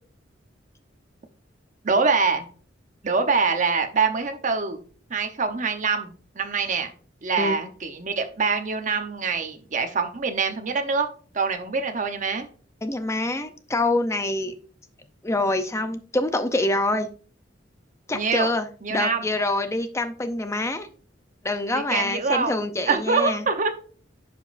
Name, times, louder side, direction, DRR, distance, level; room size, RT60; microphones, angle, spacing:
voice 1, 1.8-2.4 3.0-4.8 5.1-6.9 7.2-11.1 11.3-12.5 18.1-18.5 18.8-19.2 21.7-23.7, right 4 dB, 40° right, 6 dB, 0.9 m, -24 dB
voice 2, 12.8-14.6 15.2-17.1 18.1-20.9 21.4-23.5, left 2 dB, 15° left, 9 dB, 0.6 m, -26 dB
10.5 x 5.1 x 2.6 m, 0.42 s
head